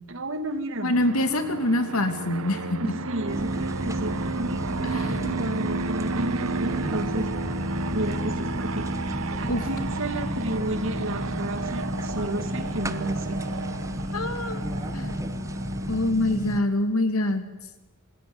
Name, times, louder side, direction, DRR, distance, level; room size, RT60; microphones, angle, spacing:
voice 1, 0.1-0.9 2.8-7.3 7.9-8.9 9.4-13.4 14.2-14.3, right 1 dB, 65° right, 8 dB, 2.4 m, -32 dB
voice 2, 0.8-2.8 4.9-5.4 9.5-9.6 14.1-14.6 14.9-15.2 15.9-17.4, left 1 dB, 90° left, 8 dB, 2.8 m, -25 dB
Fixed-wing aircraft airplane, 0.9-16.1, right 4 dB, 85° right, 1.1 m, -33 dB
sound 1, 3.3-16.6, left 1 dB, 15° right, 1.2 m, -32 dB
26.5 x 19.5 x 9.7 m, 1.1 s
head